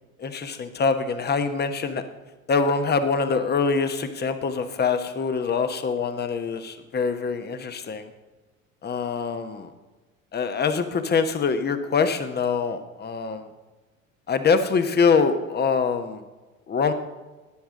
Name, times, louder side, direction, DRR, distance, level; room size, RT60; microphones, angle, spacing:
voice 1, 0.2-2.0 2.5-8.1 8.8-9.7 10.3-13.5 14.3-16.2 16.7-16.9, left 5 dB, 25° left, 9 dB, 1.1 m, -24 dB
13.0 x 10.5 x 3.8 m, 1.2 s
hypercardioid pair, 75°, 41 cm